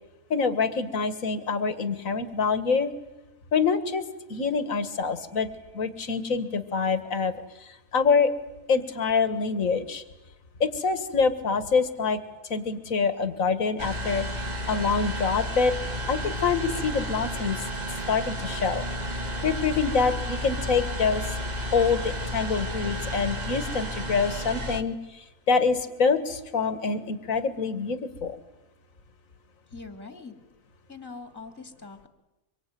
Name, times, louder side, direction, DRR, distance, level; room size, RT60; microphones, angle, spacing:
voice 1, 0.3-2.9 3.5-4.0 4.3-5.5 5.7-8.3 8.7-10.0 10.6-12.2 12.5-14.3 14.7-15.7 16.1-17.6 18.1-18.8 19.4-21.3 21.7-28.4, left 5 dB, 55° left, 11 dB, 2.1 m, -26 dB
sound 1, 13.8-24.8, left 1 dB, 25° right, 1.5 m, -32 dB
voice 2, 29.7-30.3 30.9-32.1, left 4 dB, 5° left, 7 dB, 2.2 m, -42 dB
25.0 x 24.5 x 9.3 m, 0.98 s
omnidirectional pair, 1.8 m